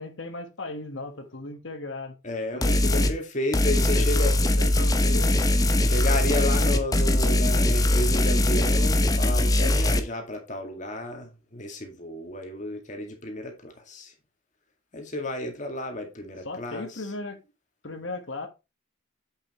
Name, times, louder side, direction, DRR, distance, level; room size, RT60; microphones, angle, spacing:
voice 1, 0.0-2.2 2.5-3.1 3.8-5.4 16.4-17.4 17.8-18.5, left 2 dB, 70° left, 1.5 m, -36 dB
voice 2, 2.2-4.3 5.8-14.1 14.9-17.1, left 1 dB, 35° left, 2.1 m, -32 dB
sound 1, 2.6-3.1 3.5-10.0, left 1 dB, 15° left, 0.8 m, -21 dB
8.2 x 7.0 x 3.1 m
head